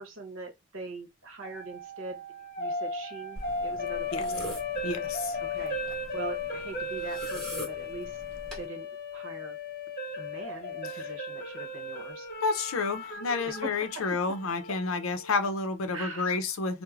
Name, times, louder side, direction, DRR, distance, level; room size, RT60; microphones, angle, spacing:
voice 1, 0.0-2.2 2.6-4.6 5.5-5.8 6.1-8.2 8.6-9.6 10.2-12.3 13.6-13.9 15.9-16.4, right 3 dB, 75° right, 0.8 m, -41 dB
sound 1, 1.4-15.5, left 2 dB, 45° left, 0.8 m, -36 dB
sound 2, 3.4-8.7, left 1 dB, 5° left, 1.0 m, -43 dB
voice 2, 4.8-5.4 10.9-11.1 12.4-16.8, left 4 dB, 85° left, 0.5 m, -30 dB
3.1 x 2.0 x 2.3 m
head